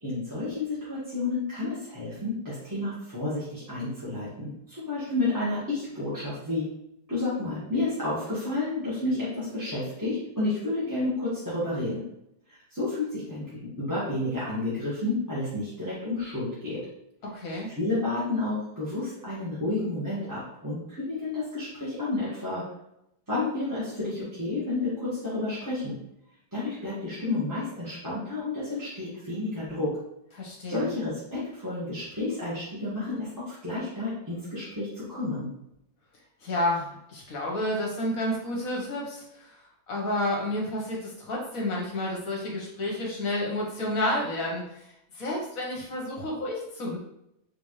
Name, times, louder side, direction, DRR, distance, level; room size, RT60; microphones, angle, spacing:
voice 1, 0.0-6.7 7.1-12.0 12.5-16.8 17.8-22.6 23.3-25.9 26.5-29.9 30.7-35.5, left 2 dB, 10° right, -11 dB, 1.2 m, -31 dB
voice 2, 17.3-17.7 30.3-30.9 36.4-39.5 39.9-44.8 45.1-47.0, left 1 dB, 50° left, -2 dB, 1.3 m, -30 dB
4.4 x 3.5 x 3.1 m, 0.81 s
omnidirectional pair, 2.1 m